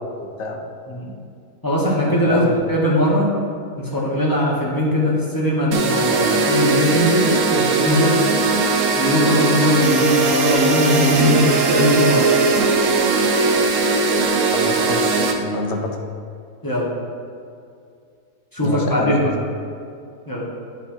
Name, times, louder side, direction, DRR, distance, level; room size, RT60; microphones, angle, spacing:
voice 1, 0.2-0.6 2.2-2.8 14.5-16.0 18.6-19.2, left 3 dB, 60° left, 2 dB, 0.8 m, -27 dB
voice 2, 1.6-3.3 3.8-8.2 9.0-12.3 16.6-16.9 18.5-19.3 20.3-20.5, equal, 15° left, -5 dB, 1.1 m, -20 dB
sound 1, 5.7-15.3, right 3 dB, 60° right, 0.9 m, -19 dB
9.8 x 3.6 x 4.4 m, 2.4 s
omnidirectional pair, 1.7 m